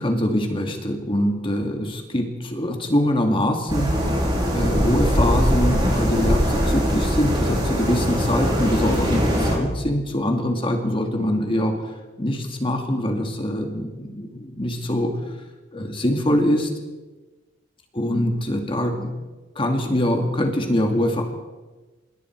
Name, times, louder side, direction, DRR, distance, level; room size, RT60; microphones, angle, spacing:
voice 1, 0.0-4.0 4.5-11.8 12.2-15.2 15.7-16.7 17.9-19.1 19.6-21.2, left 1 dB, 30° left, 3 dB, 2.4 m, -23 dB
sound 1, 3.7-9.6, equal, 25° right, 7.4 m, -21 dB
26.5 x 23.0 x 4.8 m, 1.2 s
head